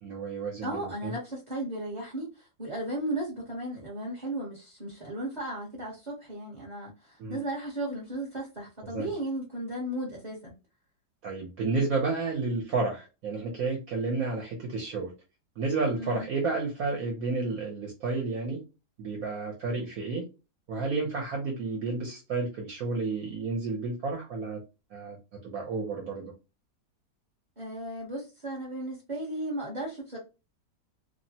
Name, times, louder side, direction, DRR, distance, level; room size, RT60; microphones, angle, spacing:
voice 1, 0.0-1.1 7.2-7.4 8.8-9.1 11.2-15.1 15.6-18.6 19.0-20.3 20.7-24.6 24.9-25.2 25.4-26.3, right 3 dB, 65° right, 1.1 m, -31 dB
voice 2, 0.6-10.5 16.0-16.3 27.6-30.2, right 1 dB, 35° right, 0.8 m, -35 dB
3.1 x 2.1 x 2.7 m
omnidirectional pair, 1.8 m